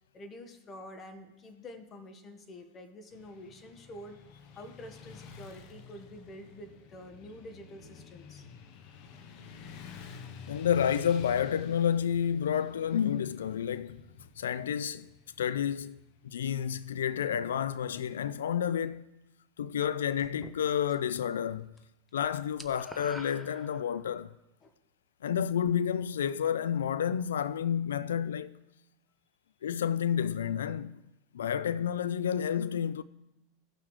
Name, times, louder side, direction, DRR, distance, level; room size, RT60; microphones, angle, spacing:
voice 1, 0.1-4.2 4.5-8.4 24.6-24.7, left 1 dB, 30° left, 1.4 m, -47 dB
Motorcycle / Traffic noise roadway noise, 3.1-17.2, left 5 dB, 55° left, 0.9 m, -51 dB
voice 2, 10.5-14.0 14.4-15.1 15.4-16.0 16.2-19.1 19.6-21.7 22.1-24.3 25.2-28.6 29.6-31.0 31.3-33.0, left 8 dB, 85° left, 0.3 m, -30 dB
sound 1, 20.2-21.2 21.5-21.8 22.1-24.2, equal, 5° left, 0.7 m, -48 dB
16.0 x 5.9 x 3.2 m
hypercardioid pair, 100°, 0 cm